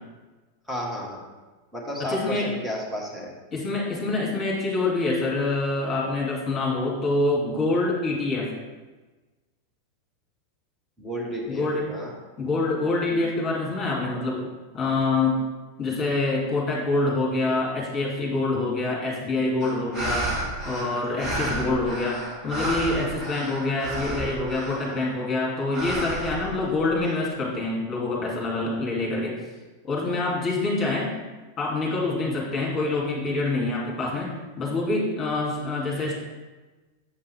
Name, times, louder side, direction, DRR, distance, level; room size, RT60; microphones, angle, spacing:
voice 1, 0.7-1.2 1.7-3.3 11.0-12.1, equal, 5° right, -3 dB, 1.6 m, -32 dB
voice 2, 2.1-2.5 3.5-8.5 11.5-11.8 12.4-14.5 14.7-15.4 15.8-20.3 20.6-29.4 29.8-31.1 31.6-36.2, left 2 dB, 25° left, -3 dB, 2.4 m, -26 dB
sound 1, 19.6-25.1 25.7-27.1, right 2 dB, 30° right, 2.3 m, -31 dB
7.7 x 5.3 x 3.5 m, 1.2 s
figure-of-eight pair, 90°, 0 cm